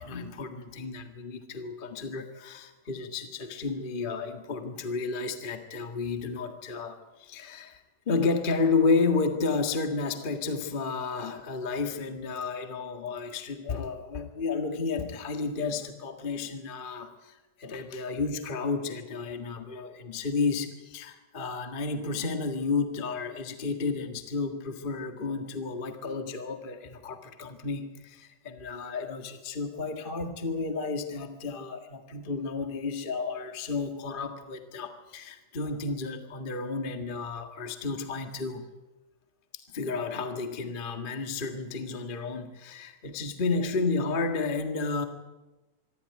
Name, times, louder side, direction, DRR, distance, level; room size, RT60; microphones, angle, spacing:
voice 1, 0.0-38.6 39.7-45.0, left 4 dB, 45° left, 6 dB, 0.6 m, -32 dB
25.0 x 12.5 x 9.6 m, 1.1 s
omnidirectional pair, 4.0 m